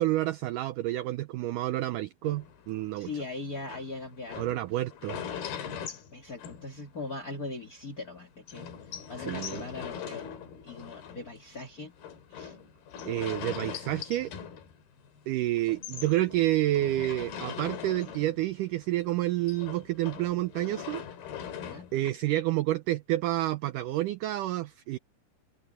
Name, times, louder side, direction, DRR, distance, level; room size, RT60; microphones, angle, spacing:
voice 1, 0.0-3.1 4.4-5.2 9.2-9.6 13.1-14.3 15.3-21.0 21.9-25.0, right 15 dB, 85° right, 1.8 m, -29 dB
sound 1, 2.2-7.2 7.6-7.7 7.9-8.0 8.5-15.3 15.6-18.6 18.9-22.1, left 8 dB, 80° left, 4.3 m, -41 dB
voice 2, 2.9-4.4 6.1-8.7 9.1-10.3 10.6-11.9 12.3-12.5 21.6-21.9, left 3 dB, 40° left, 1.5 m, -40 dB
open air
omnidirectional pair, 4.4 m